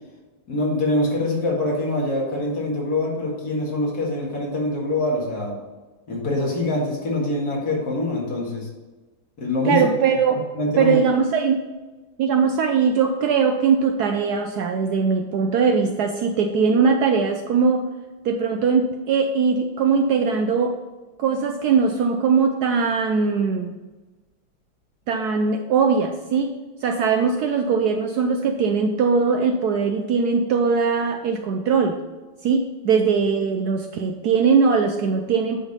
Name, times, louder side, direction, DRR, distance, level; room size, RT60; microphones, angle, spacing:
voice 1, 0.5-5.6 6.1-8.7 9.4-9.8 10.5-11.0, left 2 dB, 50° left, -3 dB, 2.4 m, -24 dB
voice 2, 9.6-10.4 10.8-11.6 12.2-17.9 18.2-20.8 21.2-23.8 25.1-32.0 32.4-35.6, right 5 dB, 75° right, 5 dB, 0.9 m, -20 dB
8.9 x 3.6 x 5.4 m, 1.2 s
omnidirectional pair, 2.2 m